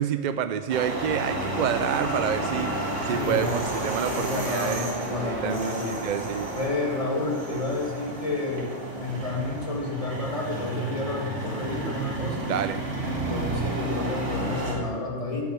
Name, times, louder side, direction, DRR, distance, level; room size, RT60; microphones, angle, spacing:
voice 1, 0.0-4.9 5.2-6.5 12.5-12.8, right 9 dB, 60° right, 10 dB, 0.4 m, -28 dB
sound 1, 0.7-14.7, right 2 dB, 75° right, 2.6 m, -31 dB
voice 2, 2.6-3.5 4.0-6.0 6.5-8.7 8.9-12.5 13.1-15.5, left 3 dB, 25° left, -2 dB, 2.3 m, -30 dB
9.2 x 7.3 x 9.0 m, 1.5 s
omnidirectional pair, 1.3 m